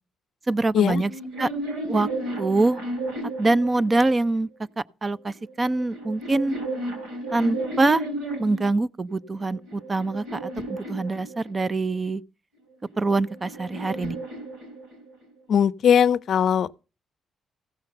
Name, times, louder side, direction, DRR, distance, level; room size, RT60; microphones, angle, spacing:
voice 1, 0.5-1.1 1.4-1.5 1.9-2.1 2.4-2.8 3.4-4.5 5.0-6.6 7.3-8.0 8.4-12.2 13.0-14.2, right 2 dB, 25° right, 0.5 m, -24 dB
sound 1, 1.0-4.4 5.3-8.7 9.4-11.8 12.8-15.2, right 1 dB, 85° right, 5.2 m, -33 dB
voice 2, 15.5-16.8, left 8 dB, 65° left, 0.5 m, -20 dB
16.0 x 5.7 x 6.6 m
cardioid pair, 90°, 0 cm